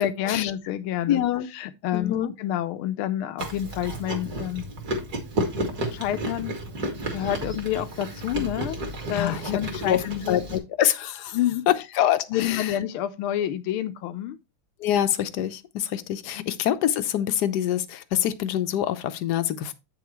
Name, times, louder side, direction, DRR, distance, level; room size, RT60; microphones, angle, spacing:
voice 1, 0.0-1.2 1.5-4.7 5.9-6.6 7.1-8.8 9.1-10.6 11.3-11.6 12.3-14.4 16.4-16.5, left 11 dB, 80° left, 1.5 m, -28 dB
voice 2, 1.1-1.5 1.9-2.3 9.1-9.5 9.8-11.4 11.7-12.8 14.8-19.7, left 11 dB, 65° left, 1.1 m, -25 dB
Chewing mastication, 3.4-10.6, right 1 dB, 45° right, 2.5 m, -32 dB
8.9 x 7.0 x 3.1 m
omnidirectional pair, 2.4 m